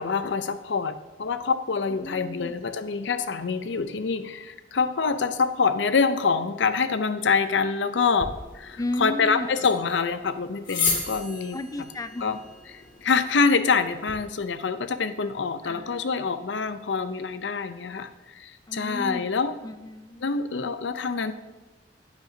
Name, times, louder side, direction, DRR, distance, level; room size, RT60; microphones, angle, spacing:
voice 1, 0.0-11.6 12.2-12.4 12.7-19.5 20.2-21.3, left 5 dB, 85° left, 11 dB, 0.6 m, -26 dB
voice 2, 2.0-2.6 8.8-9.5 11.5-12.4 15.6-16.3 18.7-19.3 19.6-20.3, left 2 dB, 20° left, 11 dB, 0.4 m, -34 dB
sound 1, 8.2-14.2, left 4 dB, 50° left, 2.1 m, -34 dB
10.0 x 9.4 x 2.7 m, 1.2 s
head